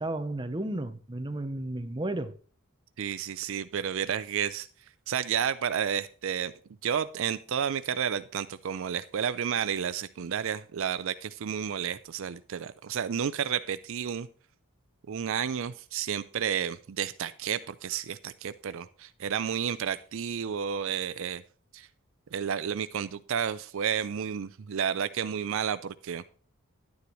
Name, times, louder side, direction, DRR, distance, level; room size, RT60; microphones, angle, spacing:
voice 1, 0.0-2.4, right 1 dB, 20° right, 0.7 m, -33 dB
voice 2, 3.0-4.7 5.1-6.5 6.8-14.3 15.1-21.4 21.7-21.9 22.3-26.2, right 8 dB, 60° right, 0.4 m, -31 dB
11.5 x 9.6 x 3.1 m
head